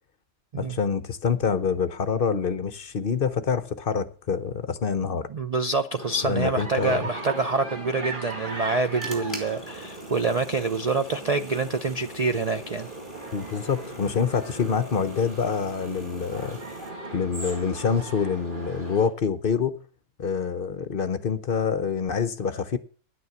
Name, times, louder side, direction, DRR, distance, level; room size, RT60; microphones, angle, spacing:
voice 1, 0.6-5.3 6.2-7.1 13.3-16.6 17.1-19.8 20.2-22.8, left 6 dB, 45° left, 0.8 m, -26 dB
voice 2, 5.3-12.9, right 3 dB, 80° right, 0.3 m, -26 dB
sound 1, 6.0-19.1, right 2 dB, 35° right, 2.3 m, -38 dB
sound 2, 8.5-16.9, left 1 dB, 10° left, 3.3 m, -47 dB
10.0 x 9.5 x 7.0 m
omnidirectional pair, 1.5 m